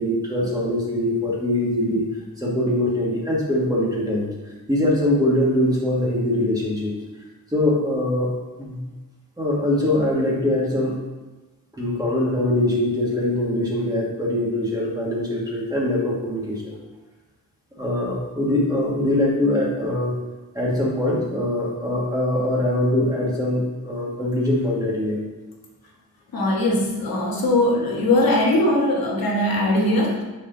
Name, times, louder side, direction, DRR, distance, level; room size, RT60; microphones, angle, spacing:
voice 1, 0.0-2.1 2.4-4.3 4.7-6.9 7.5-8.3 8.6-8.8 9.4-10.9 11.7-16.7 17.8-20.1 20.5-25.2, left 1 dB, 10° right, -5 dB, 1.3 m, -22 dB
voice 2, 26.3-30.2, left 1 dB, 75° left, -2 dB, 1.4 m, -20 dB
7.4 x 4.2 x 3.8 m, 1.2 s
wide cardioid pair, 175°, 36 cm